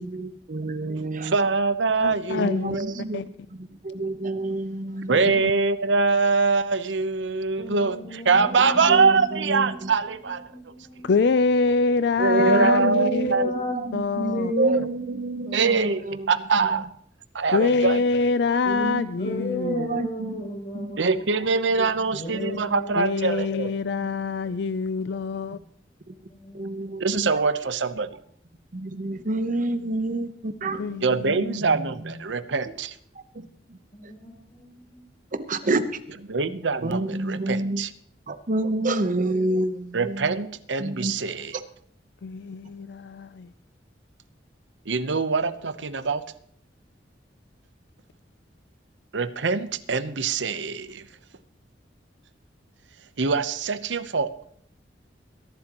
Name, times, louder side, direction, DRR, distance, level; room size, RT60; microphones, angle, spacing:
voice 1, 0.0-1.4 2.4-5.2 8.3-8.5 8.9-9.9 12.4-16.3 16.6-16.8 18.7-19.1 19.6-20.4 20.7-21.1 21.8-21.9 22.4-22.6 26.1-26.2 26.5-27.5 28.7-31.0 31.6-32.2 33.1-33.8 34.0-34.1 35.3-35.8 36.8-37.8 38.3-40.4 40.8-41.1, right 2 dB, 45° right, 0.9 m, -29 dB
voice 2, 1.2-3.2 5.1-10.5 12.2-13.5 14.6-14.9 15.5-16.0 16.3-16.9 17.3-18.0 21.0-23.7 27.0-28.2 31.0-33.0 36.3-37.9 39.9-41.6 44.9-46.2 49.1-51.1 53.2-54.3, right 4 dB, 90° right, 0.8 m, -23 dB
voice 3, 2.0-2.8 3.1-3.2 11.0-13.3 13.9-14.5 17.5-19.9 23.0-25.6 30.8-31.6 42.2-43.5, left 4 dB, 65° left, 0.4 m, -25 dB
voice 4, 7.6-9.9 10.2-11.1 12.5-13.7 14.1-14.8 15.5-16.0 19.2-21.4 22.1-24.5 26.3-26.7 31.3-31.4 33.9-35.0, left 1 dB, 45° left, 7.1 m, -34 dB
22.5 x 11.5 x 3.0 m
head